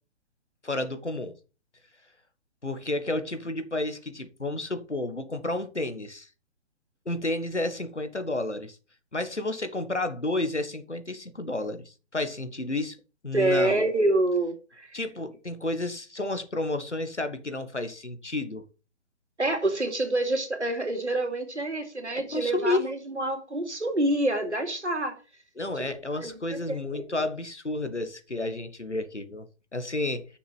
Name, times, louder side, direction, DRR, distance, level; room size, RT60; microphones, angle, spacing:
voice 1, 0.6-1.4 2.6-6.3 7.0-8.8 9.1-13.0 13.2-13.8 14.9-18.7 22.1-22.9 25.6-30.3, left 2 dB, 90° left, 1.6 m, -31 dB
voice 2, 13.3-14.9 19.4-25.2 25.8-25.9 26.2-26.4 26.9-27.0, right 2 dB, 85° right, 2.9 m, -27 dB
6.9 x 6.3 x 7.0 m
figure-of-eight pair, 130°, 34 cm